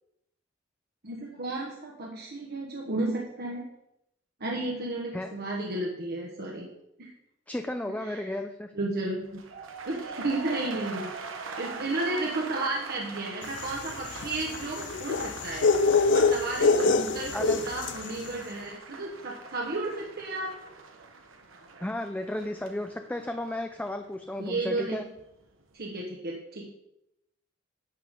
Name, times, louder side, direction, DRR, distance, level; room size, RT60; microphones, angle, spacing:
voice 1, 1.0-3.6 4.4-6.7 7.0-7.1 8.0-8.3 8.7-9.4 9.8-15.7 16.1-20.6 24.4-25.0 25.7-26.7, right 2 dB, 55° right, -1 dB, 1.4 m, -33 dB
voice 2, 7.5-8.7 17.3-17.6 21.8-25.0, left 1 dB, 10° left, 6 dB, 0.5 m, -33 dB
sound 1, 9.2-25.3 25.6-26.0, right 4 dB, 85° right, 1.1 m, -43 dB
sound 2, 13.6-18.1, left 4 dB, 65° left, 0.5 m, -25 dB
11.5 x 8.1 x 3.8 m, 0.83 s
head